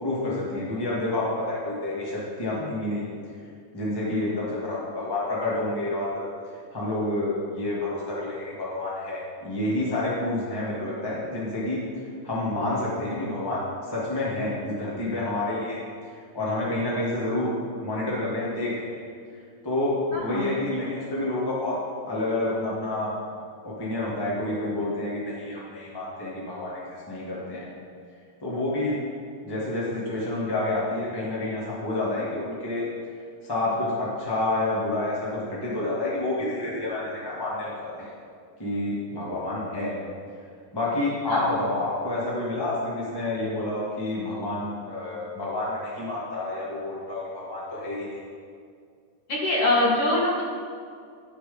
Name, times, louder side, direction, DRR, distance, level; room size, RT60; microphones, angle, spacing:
voice 1, 0.0-3.0 3.7-6.3 6.7-11.8 12.2-13.6 13.9-15.8 16.3-17.5 17.8-18.9 19.6-21.8 22.1-23.1 23.6-27.7 28.4-28.9 29.4-32.9 33.4-38.1 38.6-39.9 40.7-48.2, left 2 dB, 35° left, -6 dB, 0.3 m, -29 dB
voice 2, 20.1-20.5 41.3-41.5 49.3-50.4, left 1 dB, 55° left, -4 dB, 1.8 m, -23 dB
11.5 x 4.0 x 5.0 m, 2.2 s
omnidirectional pair, 3.7 m